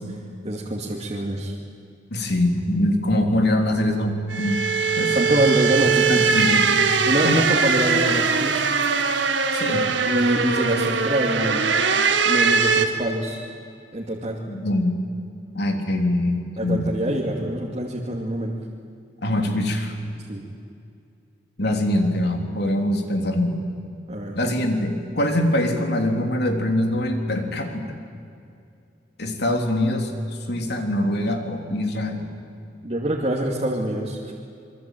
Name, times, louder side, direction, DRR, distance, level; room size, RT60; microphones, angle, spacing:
voice 1, 0.4-1.6 5.1-6.3 7.0-8.7 10.1-11.7 12.3-13.4 13.9-14.4 16.6-18.5 20.3-20.4 24.1-24.4 32.8-34.3, right 1 dB, 35° right, -3 dB, 2.5 m, -25 dB
voice 2, 2.1-4.6 5.0-5.2 6.1-6.7 7.2-7.4 9.5-9.9 14.5-15.0 15.5-16.9 19.2-20.0 21.6-23.5 24.4-28.0 29.2-30.1 30.5-32.3, left 1 dB, 65° left, 4 dB, 3.4 m, -23 dB
sound 1, 4.3-12.9, right 5 dB, 90° right, 2.0 m, -21 dB
27.5 x 23.0 x 9.2 m, 2.4 s
head